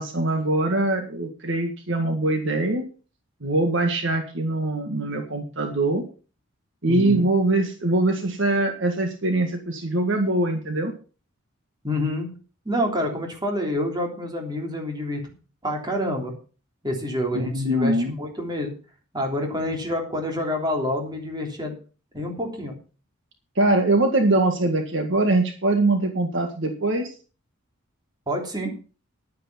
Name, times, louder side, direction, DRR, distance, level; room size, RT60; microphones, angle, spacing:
voice 1, 0.0-2.8 3.4-6.0 6.8-10.9 17.3-18.2 23.6-27.1, right 2 dB, 60° right, 5 dB, 1.8 m, -23 dB
voice 2, 6.9-7.3 11.8-12.3 12.6-15.3 15.6-16.3 16.8-18.7 19.1-21.8 22.1-22.7 28.3-28.7, left 1 dB, 20° right, 1 dB, 3.3 m, -27 dB
11.0 x 9.7 x 5.7 m, 0.37 s
head